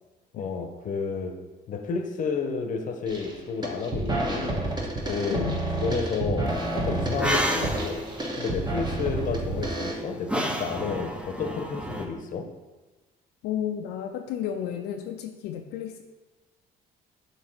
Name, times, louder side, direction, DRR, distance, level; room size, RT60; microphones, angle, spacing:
voice 1, 0.3-1.4 1.7-4.6 4.8-5.5 5.8-8.0 8.4-12.5, left 5 dB, 50° left, 5 dB, 0.8 m, -31 dB
sound 1, 3.1-3.3 3.6-9.9, right 2 dB, 25° right, 1.2 m, -29 dB
voice 2, 5.3-5.7 13.4-16.0, left 9 dB, 85° left, 4 dB, 0.4 m, -32 dB
sound 2, 7.0-12.1, equal, 5° right, 0.6 m, -32 dB
7.3 x 2.9 x 4.5 m, 1.2 s
cardioid pair, 110°, 17 cm